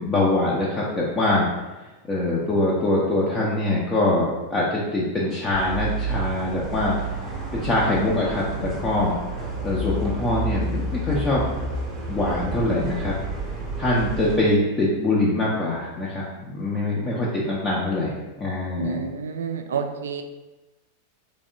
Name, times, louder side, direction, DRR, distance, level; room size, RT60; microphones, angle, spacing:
voice 1, 0.0-1.5 2.1-6.9 7.3-9.1 9.6-11.5 12.1-13.2 13.8-18.1 18.4-19.0, left 2 dB, 20° left, -5 dB, 0.5 m, -23 dB
sound 1, 5.5-14.4, right 2 dB, 20° right, 0.8 m, -30 dB
voice 2, 18.8-20.2, right 6 dB, 65° right, 6 dB, 0.3 m, -29 dB
3.4 x 3.1 x 2.6 m, 1.1 s
figure-of-eight pair, 90°, 0 cm